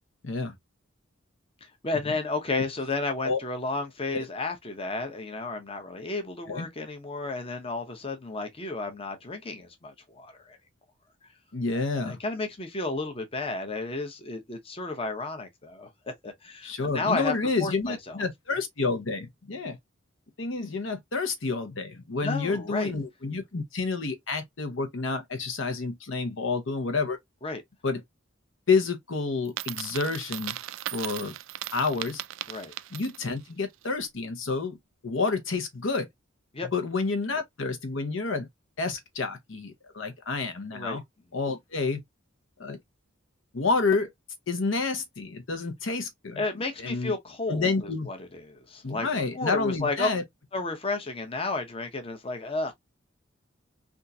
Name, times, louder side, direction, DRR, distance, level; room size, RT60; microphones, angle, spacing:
voice 1, 0.2-0.5 2.1-2.2 3.2-3.4 4.1-4.3 6.5-6.7 11.5-12.2 16.6-19.8 20.4-27.2 27.8-28.0 28.7-30.6 30.9-31.4 31.7-32.2 32.9-34.8 35.0-36.1 36.7-38.5 38.8-41.0 41.3-42.0 42.6-42.8 43.5-44.1 44.5-47.1 47.5-48.1 48.8-50.2, left 4 dB, 75° left, 0.9 m, -29 dB
voice 2, 1.6-10.6 11.9-17.3 17.6-18.2 22.1-22.9 27.4-27.6 32.5-32.7 36.5-36.7 40.7-41.0 46.4-49.1 49.3-50.1 50.5-52.7, left 3 dB, 30° left, 0.8 m, -32 dB
Coin (dropping), 29.5-33.4, right 14 dB, 75° right, 0.3 m, -37 dB
3.6 x 2.5 x 2.6 m
head